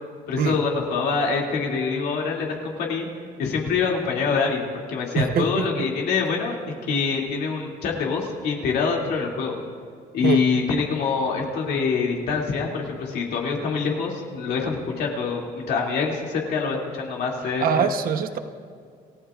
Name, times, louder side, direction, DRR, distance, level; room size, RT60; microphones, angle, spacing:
voice 1, 0.3-3.1 3.4-6.6 6.8-9.5 10.1-17.9, left 5 dB, 75° left, -1 dB, 2.6 m, -25 dB
voice 2, 5.1-5.7 10.2-10.4 17.6-18.4, right 7 dB, 60° right, 9 dB, 1.0 m, -23 dB
28.0 x 14.5 x 2.5 m, 2.2 s
cardioid pair, 110°, 17 cm